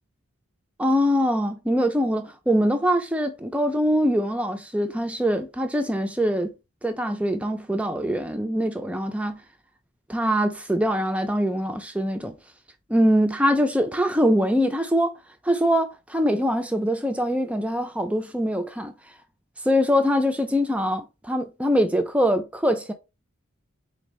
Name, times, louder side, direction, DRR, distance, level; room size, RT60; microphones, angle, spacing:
voice 1, 0.8-6.5 6.8-9.4 10.1-12.3 12.9-15.1 15.4-18.9 19.6-22.9, equal, 5° right, 0.3 m, -23 dB
4.0 x 2.6 x 3.0 m
head